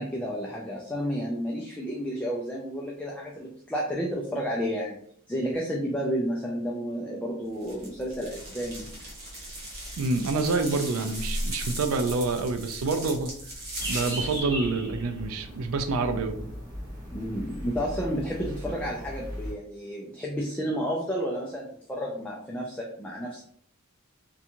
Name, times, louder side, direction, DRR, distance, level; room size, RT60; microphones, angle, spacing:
voice 1, 0.0-5.0 5.3-8.9 16.2-16.4 17.1-23.4, equal, 5° left, -3 dB, 0.3 m, -31 dB
sound 1, 7.6-14.4, right 1 dB, 45° right, 0.9 m, -37 dB
voice 2, 10.0-13.3 13.9-16.4, right 3 dB, 70° right, 8 dB, 0.4 m, -27 dB
sound 2, 13.8-19.5, equal, 20° right, 0.9 m, -37 dB
2.6 x 2.3 x 2.8 m, 0.64 s
head